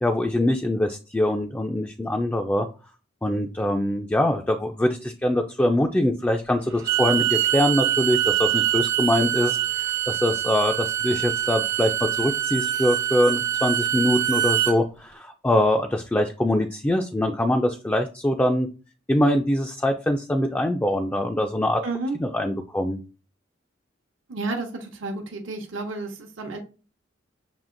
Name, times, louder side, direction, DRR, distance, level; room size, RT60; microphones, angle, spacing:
voice 1, 0.0-2.7 3.2-11.9 12.2-18.7 19.1-21.8 22.2-23.0, left 1 dB, 10° left, 4 dB, 0.3 m, -23 dB
Bowed string instrument, 6.7-14.8, right 12 dB, 65° right, 1.2 m, -24 dB
voice 2, 21.8-22.2 24.3-26.6, right 3 dB, 85° right, 2 dB, 0.9 m, -31 dB
7.1 x 2.8 x 2.5 m, 0.34 s
head